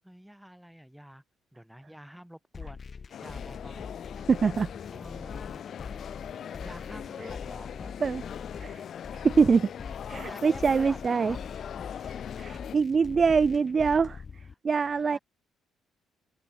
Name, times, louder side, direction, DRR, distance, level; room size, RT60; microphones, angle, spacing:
voice 1, 0.0-1.2 1.5-2.8 3.2-4.0 4.9-5.6 6.6-8.0 10.2-11.4 15.0-15.2, equal, 5° right, 5.6 m, -47 dB
sound 1, 2.5-14.5, left 5 dB, 35° left, 1.3 m, -43 dB
sound 2, 3.1-12.8, left 9 dB, 55° left, 0.5 m, -41 dB
voice 2, 4.3-4.7 8.0-8.2 8.6-8.8 9.1-9.7 10.1-11.4 12.4-14.2 14.6-15.2, right 5 dB, 35° right, 0.5 m, -24 dB
open air
cardioid pair, 115°, 0 cm